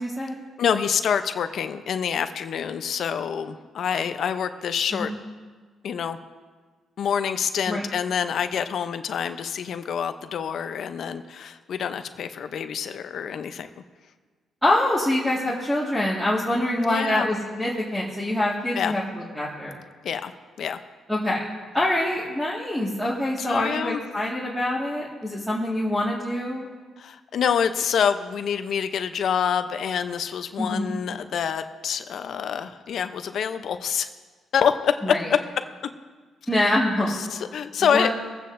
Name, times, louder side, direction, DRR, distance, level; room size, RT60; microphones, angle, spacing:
voice 1, 0.0-0.4 4.9-5.2 7.7-7.9 14.6-19.8 21.1-21.4 21.7-26.7 30.6-30.9 35.0-35.3 36.5-37.1 37.9-38.1, left 1 dB, ahead, -6 dB, 1.8 m, -25 dB
voice 2, 0.6-5.1 5.8-6.2 7.0-13.7 16.8-17.3 18.7-18.9 20.0-20.3 20.6-20.8 23.4-24.0 27.0-34.1 34.5-35.1 36.6-36.8 37.1-38.1, left 7 dB, 65° left, 9 dB, 0.6 m, -26 dB
23.5 x 8.5 x 2.6 m, 1.5 s
cardioid pair, 90°, 0 cm